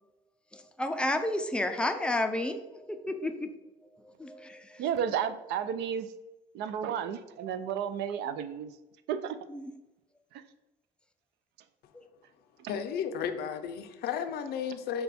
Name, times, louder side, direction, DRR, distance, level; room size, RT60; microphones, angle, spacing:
voice 1, 0.8-3.5 4.2-4.8 9.5-9.7 11.9-12.0, left 1 dB, 5° left, 7 dB, 0.4 m, -31 dB
voice 2, 4.8-6.1 6.5-8.7 9.1-9.3, right 8 dB, 80° right, 12 dB, 0.4 m, -32 dB
voice 3, 12.7-15.0, left 7 dB, 70° left, 8 dB, 0.5 m, -33 dB
5.2 x 2.3 x 4.1 m, 0.98 s
cardioid pair, 110°, 17 cm